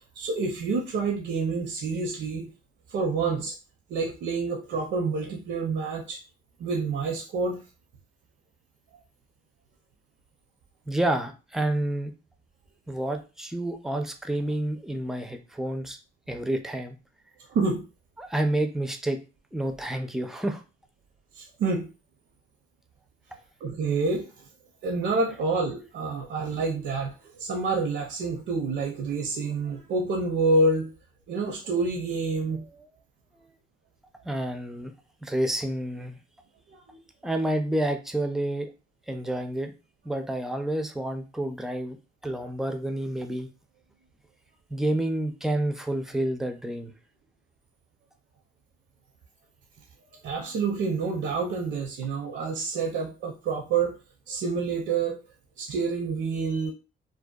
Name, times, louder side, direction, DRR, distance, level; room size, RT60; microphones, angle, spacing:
voice 1, 0.2-2.5 2.9-3.6 3.9-6.2 6.6-7.6 17.5-17.8 21.3-21.9 23.6-24.3 24.8-30.9 31.3-32.6 36.9-37.0 50.2-54.0 54.3-55.2 55.6-56.7, right 3 dB, 65° right, 2 dB, 0.5 m, -28 dB
voice 2, 10.9-12.1 12.9-16.0 16.3-17.0 18.2-19.2 19.5-20.6 34.2-34.9 35.2-36.2 37.2-38.7 39.1-39.7 40.0-42.0 42.2-43.5 44.7-46.9, right 1 dB, ahead, 6 dB, 0.4 m, -29 dB
2.6 x 2.1 x 2.3 m, 0.31 s
cardioid pair, 90°, 20 cm